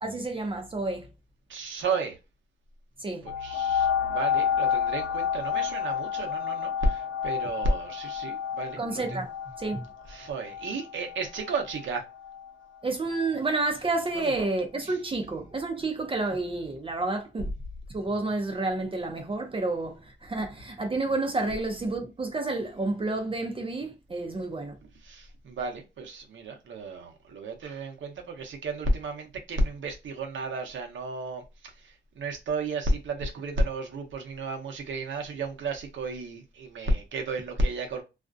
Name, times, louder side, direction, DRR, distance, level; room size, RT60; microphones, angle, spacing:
voice 1, 0.0-1.1 3.0-3.3 8.8-9.3 9.6-9.8 12.8-17.5 17.9-24.7, right 2 dB, 25° right, 0.5 m, -30 dB
voice 2, 1.5-2.2 3.4-9.2 10.1-12.0 14.2-14.5 14.8-15.0 25.0-38.0, right 2 dB, 80° right, 0.8 m, -32 dB
sound 1, 3.3-12.5 13.2-13.3, left 8 dB, 60° left, 0.8 m, -30 dB
2.4 x 2.1 x 2.5 m
wide cardioid pair, 120°, 20 cm